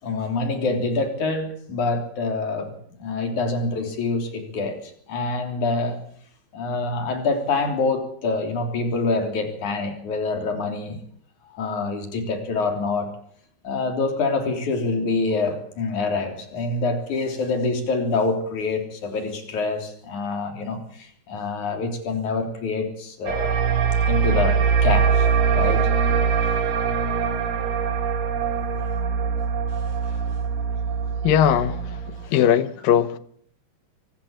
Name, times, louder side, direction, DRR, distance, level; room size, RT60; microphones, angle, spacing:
voice 1, 0.0-2.7 3.0-4.8 5.1-6.0 6.5-11.0 11.5-13.1 13.6-23.6 24.1-25.9 32.2-32.3, left 3 dB, 55° left, 4.7 m, -26 dB
sound 1, 23.3-32.3, right 6 dB, 90° right, 3.8 m, -22 dB
voice 2, 31.2-32.0 32.3-33.2, left 10 dB, 75° left, 2.5 m, -19 dB
23.5 x 12.0 x 8.9 m
omnidirectional pair, 4.3 m